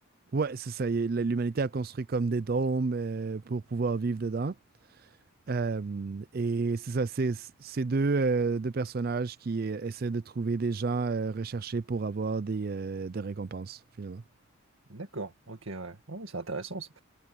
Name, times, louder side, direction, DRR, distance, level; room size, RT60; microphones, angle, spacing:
voice 1, 0.3-4.5 5.5-14.2, right 4 dB, 45° right, 0.4 m, -30 dB
voice 2, 14.9-17.0, right 3 dB, 75° right, 1.8 m, -38 dB
head